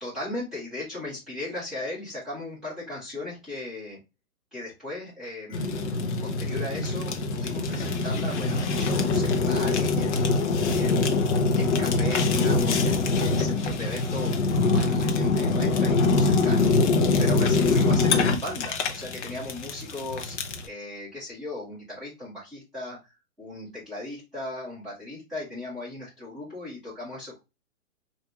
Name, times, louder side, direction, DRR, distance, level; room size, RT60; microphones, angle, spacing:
voice 1, 0.0-4.0 4.5-10.3 10.7-14.4 14.7-16.7 17.2-20.3 20.6-23.1 23.4-27.4, left 1 dB, ahead, -12 dB, 1.5 m, -37 dB
Fire, 5.5-20.7, left 3 dB, 50° left, 0.7 m, -24 dB
3.5 x 2.6 x 2.8 m, 0.25 s
hypercardioid pair, 165°, 45 cm